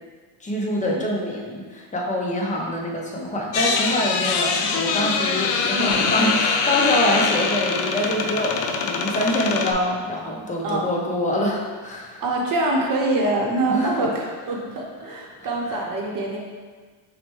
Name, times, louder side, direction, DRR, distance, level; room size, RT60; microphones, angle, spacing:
voice 1, 0.4-12.2 13.7-14.0 15.4-15.8, left 1 dB, 15° left, -2 dB, 0.6 m, -25 dB
sound 1, 3.5-9.7, left 5 dB, 65° left, 0.5 m, -23 dB
voice 2, 5.7-6.2 10.6-10.9 12.2-16.4, right 2 dB, 45° right, -1 dB, 0.8 m, -24 dB
5.8 x 2.2 x 3.0 m, 1.5 s
cardioid pair, 125°, 48 cm